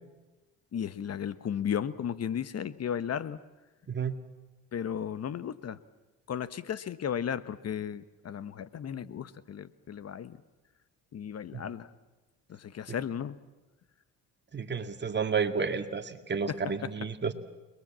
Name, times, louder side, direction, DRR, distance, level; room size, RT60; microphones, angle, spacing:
voice 1, 0.7-3.4 4.7-5.8 6.3-10.4 11.1-11.9 12.5-13.4 16.5-16.6, left 8 dB, 50° left, 15 dB, 1.1 m, -35 dB
voice 2, 14.5-17.3, right 5 dB, 30° right, 7 dB, 2.2 m, -31 dB
29.0 x 21.5 x 7.5 m, 1.1 s
cardioid pair, 90°, 33 cm